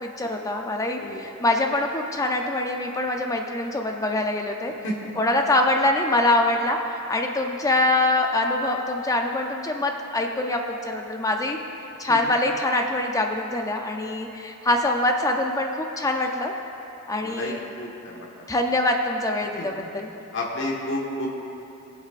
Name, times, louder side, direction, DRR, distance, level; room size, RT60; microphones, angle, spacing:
voice 1, 0.0-4.7 5.2-11.6 12.0-16.5 17.1-17.6 18.5-20.1, left 2 dB, 15° left, 3 dB, 0.5 m, -24 dB
voice 2, 17.2-18.3 19.6-19.7 20.3-21.3, left 1 dB, 55° left, -2 dB, 1.3 m, -31 dB
19.0 x 8.1 x 2.5 m, 2.9 s
head